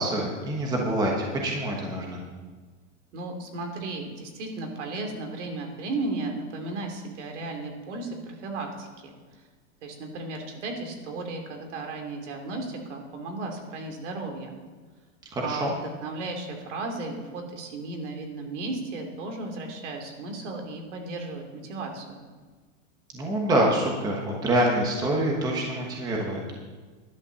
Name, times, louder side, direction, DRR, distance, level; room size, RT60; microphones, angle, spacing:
voice 1, 0.0-2.2 15.3-15.7 23.1-26.6, right 1 dB, 10° right, -1 dB, 1.2 m, -26 dB
voice 2, 3.1-9.1 9.8-14.5 15.4-22.3, right 2 dB, 70° right, 3 dB, 2.9 m, -35 dB
11.5 x 10.0 x 6.9 m, 1.4 s
supercardioid pair, 175°, 37 cm